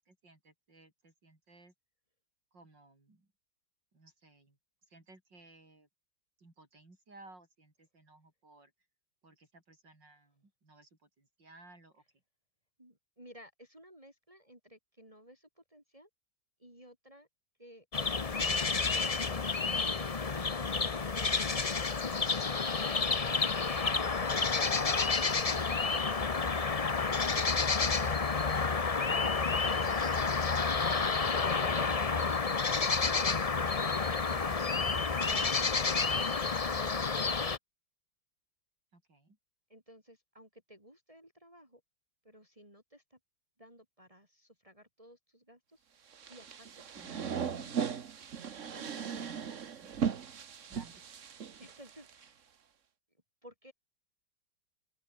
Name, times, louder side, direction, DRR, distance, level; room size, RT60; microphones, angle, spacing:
voice 1, 0.0-1.7 2.5-3.3 3.9-4.6 4.9-5.9 6.4-8.7 9.2-12.0 38.9-39.4 46.9-47.4 49.2-49.9 50.6-51.0, right 2 dB, 70° right, 6.8 m, -59 dB
voice 2, 12.8-16.1 16.6-17.3 17.6-17.9 39.7-41.8 42.2-43.2 43.6-45.8 46.3-46.8 47.1-47.8 48.7-49.6 51.6-52.5 53.4-53.7, equal, 15° right, 5.0 m, -58 dB
sound 1, 17.9-37.6, left 4 dB, 30° left, 0.7 m, -30 dB
sound 2, 46.1-52.3, right 7 dB, 45° right, 1.4 m, -38 dB
open air
omnidirectional pair, 2.0 m